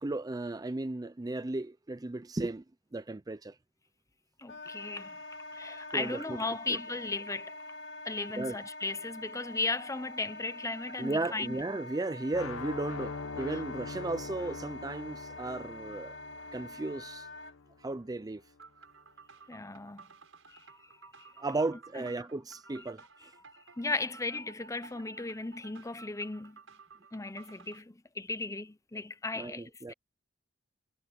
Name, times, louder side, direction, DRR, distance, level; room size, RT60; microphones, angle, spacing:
voice 1, 0.0-2.6 2.9-3.6 5.9-6.4 6.7-6.8 8.4-8.6 11.0-16.2 16.5-17.3 17.8-18.4 21.4-23.3 29.4-29.9, right 2 dB, 20° right, 0.5 m, -35 dB
voice 2, 4.4-5.2 5.5-7.5 8.0-11.6 13.5-13.6 19.5-20.0 20.5-20.6 21.0-21.4 23.7-26.6 27.1-29.6 29.9-30.0, left 3 dB, 15° left, 0.8 m, -36 dB
Wind instrument woodwind instrument, 4.5-17.5, left 2 dB, 65° left, 2.2 m, -45 dB
sound 1, 12.3-18.3, left 4 dB, 85° left, 0.9 m, -43 dB
sound 2, 18.6-27.8, right 4 dB, 70° right, 7.9 m, -54 dB
head